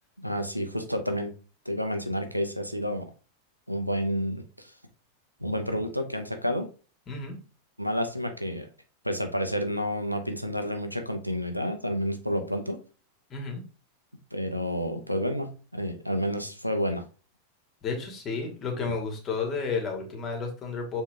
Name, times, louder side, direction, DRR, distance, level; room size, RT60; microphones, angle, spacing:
voice 1, 0.2-1.4 1.6-3.1 3.7-4.7 5.4-6.7 7.8-8.7 9.0-12.8 14.3-17.0, equal, 90° right, 6 dB, 1.0 m, -30 dB
voice 2, 7.1-7.4 13.3-13.6 17.8-21.0, left 4 dB, 30° left, 2 dB, 2.4 m, -32 dB
7.3 x 4.3 x 3.6 m, 0.36 s
figure-of-eight pair, 90°, 0 cm